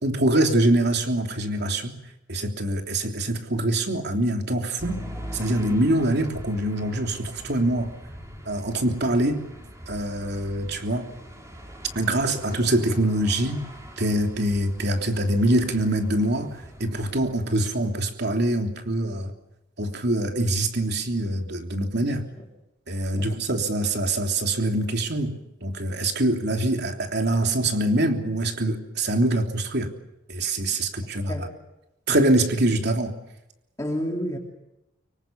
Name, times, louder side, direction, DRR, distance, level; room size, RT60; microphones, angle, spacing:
voice 1, 0.0-1.9 2.3-5.0 5.3-7.9 8.4-9.4 9.9-11.1 11.9-13.6 14.0-19.3 19.8-22.2 22.9-25.3 25.6-29.9 30.3-31.5 32.1-33.1, right 1 dB, 55° right, 4 dB, 3.2 m, -24 dB
sound 1, 4.8-17.3, equal, 15° right, 4.8 m, -42 dB
voice 2, 23.1-23.5 31.3-31.5 33.8-34.4, equal, 15° left, 0 dB, 2.9 m, -30 dB
25.5 x 24.0 x 7.1 m, 0.93 s
head